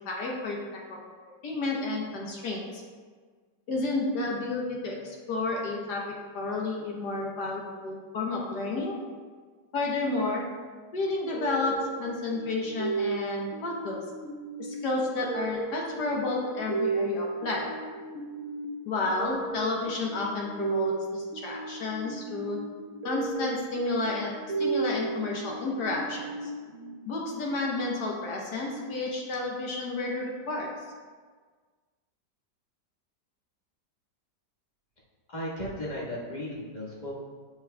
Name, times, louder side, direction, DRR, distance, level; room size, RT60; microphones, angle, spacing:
voice 1, 0.0-1.0 1.4-2.8 3.7-6.0 6.3-9.0 9.7-10.4 10.9-14.0 14.6-17.7 18.8-22.6 23.0-24.3 24.6-26.5 27.1-30.7, left 2 dB, 70° left, -2 dB, 1.5 m, -31 dB
sound 1, 11.3-27.7, right 3 dB, 55° right, 1.0 m, -35 dB
voice 2, 35.3-37.1, equal, 25° left, -5 dB, 1.2 m, -35 dB
7.7 x 5.8 x 2.2 m, 1.5 s
omnidirectional pair, 1.9 m